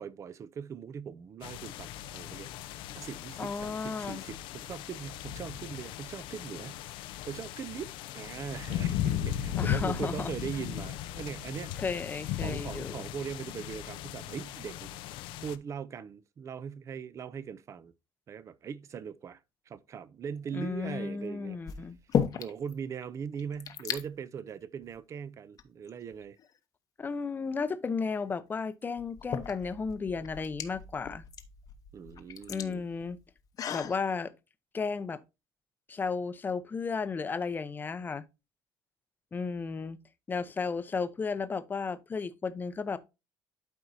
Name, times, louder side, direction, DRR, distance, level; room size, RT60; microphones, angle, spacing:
voice 1, 0.0-11.8 12.4-15.0 15.4-17.9 18.3-19.4 19.7-21.6 22.4-26.4 31.9-32.8, right 7 dB, 35° right, 0.5 m, -40 dB
sound 1, 1.4-15.6, left 11 dB, 85° left, 0.6 m, -37 dB
voice 2, 3.4-4.2 9.6-10.3 11.8-13.0 20.5-22.0 27.0-31.2 32.5-33.2 33.7-34.3 34.7-35.2 35.9-38.2 39.3-40.0 40.3-43.0, left 5 dB, 25° left, 0.6 m, -34 dB
sound 2, 20.4-20.9 21.7-22.7 23.0-23.1 23.3-24.0 24.8-25.0 25.6-26.5 28.2-28.3 29.0-34.0, left 8 dB, 45° left, 0.9 m, -35 dB
12.0 x 4.6 x 2.7 m
cardioid pair, 140°, 8 cm